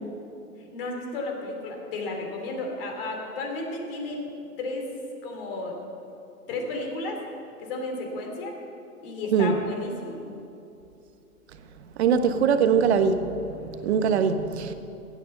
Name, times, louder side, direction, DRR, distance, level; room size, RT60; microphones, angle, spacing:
voice 1, 0.6-4.2 4.6-4.8 5.2-5.8 6.5-7.2 7.6-8.5 9.0-10.2, left 2 dB, 35° left, 2 dB, 3.0 m, -33 dB
voice 2, 12.0-14.7, right 6 dB, 45° right, 8 dB, 1.2 m, -22 dB
16.5 x 9.8 x 6.8 m, 2.7 s
hypercardioid pair, 150°, 46 cm